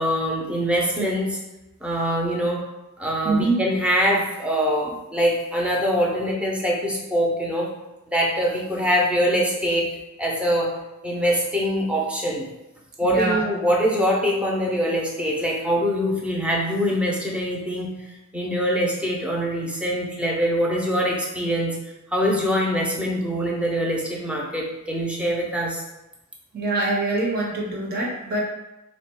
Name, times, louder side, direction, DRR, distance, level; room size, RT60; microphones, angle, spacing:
voice 1, 0.0-1.4 1.8-2.6 3.0-7.7 8.1-9.9 10.2-10.8 11.0-12.4 13.0-17.9 18.3-21.7 22.1-25.8, equal, 5° right, -2 dB, 0.6 m, -23 dB
voice 2, 3.2-3.6 13.0-13.4 26.5-28.4, right 2 dB, 45° right, -2 dB, 0.9 m, -24 dB
3.6 x 2.2 x 4.4 m, 0.98 s
head